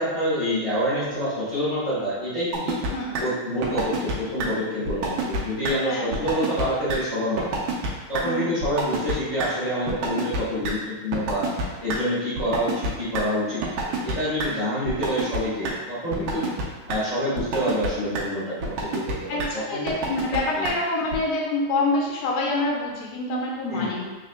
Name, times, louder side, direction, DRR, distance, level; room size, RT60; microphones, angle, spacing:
voice 1, 0.0-2.8 3.2-7.6 8.1-11.5 11.8-16.4 16.9-19.8 20.5-20.7 23.7-23.9, equal, 35° left, -12 dB, 1.3 m, -27 dB
sound 1, 2.5-2.9 3.1-3.2 3.6-4.1 4.4-4.5 4.9-5.4 5.6-5.7 6.1-6.6 6.9-7.0 7.4-8.2 8.6-9.1 9.4-9.5 9.9-10.4 10.6-10.7 11.1-12.0 12.4-13.2 13.6-14.1 14.4-14.5 14.9-15.4 15.6-15.7 16.1-16.6 16.9-17.0 17.4-17.9 18.1-18.2 18.6-19.1 19.4-19.5 19.9-20.4 20.6-20.7 21.1-21.2, right 4 dB, 75° right, 1.7 m, -26 dB
voice 2, 5.9-6.3 8.2-8.6 13.9-14.0 16.3-16.5 19.3-24.1, left 2 dB, 75° left, -3 dB, 1.7 m, -27 dB
4.5 x 3.5 x 2.2 m, 1.2 s
omnidirectional pair, 3.5 m